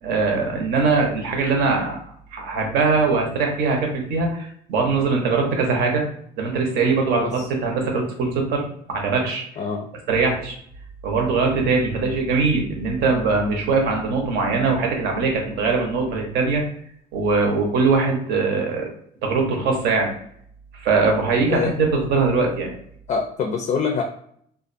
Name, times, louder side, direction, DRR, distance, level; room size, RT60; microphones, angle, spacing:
voice 1, 0.0-2.0 2.3-6.0 6.4-9.4 10.1-10.6 11.0-16.6 17.1-18.9 19.2-20.1 20.7-22.7, right 4 dB, 75° right, 1 dB, 0.8 m, -21 dB
voice 2, 9.6-9.9 21.5-21.7 23.1-24.0, left 5 dB, 40° left, 4 dB, 0.4 m, -24 dB
2.4 x 2.2 x 2.5 m, 0.66 s
cardioid pair, 110°, 17 cm